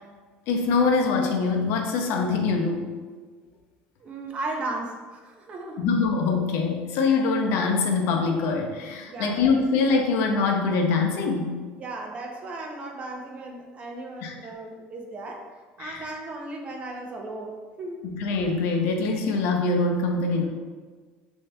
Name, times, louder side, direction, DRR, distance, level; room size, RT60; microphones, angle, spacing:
voice 1, 0.5-2.8 5.8-11.6 14.2-14.3 15.8-16.1 18.0-20.5, left 4 dB, 65° left, 3 dB, 0.6 m, -24 dB
voice 2, 4.0-5.8 9.1-9.4 11.8-15.5 15.8-18.1, right 2 dB, 30° right, 2 dB, 0.5 m, -36 dB
6.6 x 2.7 x 2.2 m, 1.5 s
cardioid pair, 150°, 4 cm